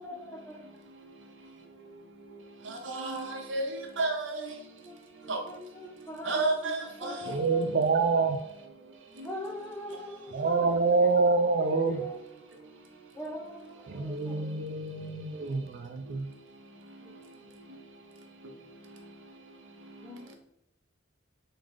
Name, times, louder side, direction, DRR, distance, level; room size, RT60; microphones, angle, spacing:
voice 1, 0.0-0.6 4.8-5.0 5.4-6.5 7.0-7.8 9.2-10.6 11.7-12.8 13.1-14.6 17.0-17.2 20.0-20.3, left 1 dB, 10° left, 0.7 m, -42 dB
voice 2, 0.6-7.8 8.8-9.3 9.9-10.5 12.4-13.2 13.9-20.3, right 2 dB, 80° right, 0.8 m, -38 dB
voice 3, 7.3-8.4 10.3-12.0 13.9-16.3, right 4 dB, 50° right, 0.4 m, -26 dB
3.7 x 3.6 x 3.2 m
head